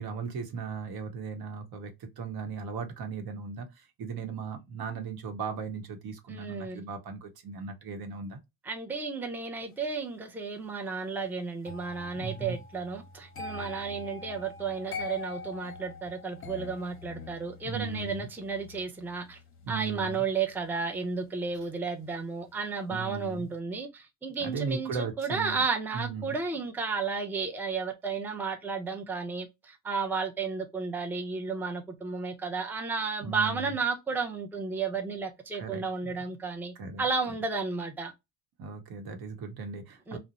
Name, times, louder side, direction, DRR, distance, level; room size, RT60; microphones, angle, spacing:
voice 1, 0.0-8.4 12.1-12.6 17.6-18.3 19.6-20.2 22.9-23.5 24.4-25.6 25.9-26.3 33.2-33.7 35.6-36.1 36.8-37.0 38.6-40.2, right 5 dB, 65° right, 0.9 m, -37 dB
voice 2, 6.3-6.8 8.6-19.4 19.7-38.1 40.1-40.2, right 4 dB, 5° right, 0.5 m, -33 dB
sound 1, 11.6-22.6 22.9-23.3, left 4 dB, 30° left, 0.8 m, -45 dB
2.8 x 2.0 x 2.4 m
cardioid pair, 85°, 39 cm